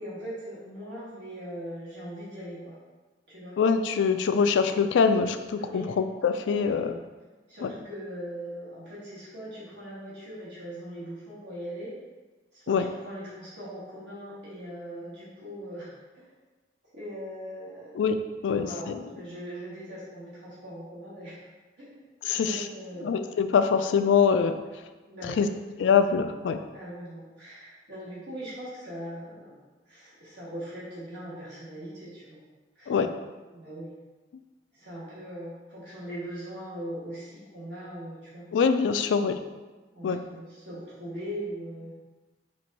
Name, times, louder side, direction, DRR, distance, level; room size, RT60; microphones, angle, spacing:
voice 1, 0.0-2.8 3.3-3.5 5.6-5.9 6.5-6.9 7.5-11.9 12.5-16.3 16.9-18.0 18.5-21.4 21.8-22.0 22.3-23.2 25.1-25.5 26.7-29.6 29.9-32.4 32.7-32.9 33.5-33.9 34.7-38.5 39.9-41.9, equal, 65° right, -9 dB, 1.4 m, -40 dB
voice 2, 3.6-6.9 7.6-7.7 12.7-12.8 18.0-19.0 22.2-22.6 23.0-24.6 25.4-25.5 25.8-26.6 32.9-33.1 38.5-39.4 40.0-40.2, left 6 dB, 75° left, 9 dB, 0.3 m, -24 dB
4.5 x 2.5 x 4.1 m, 1.2 s
head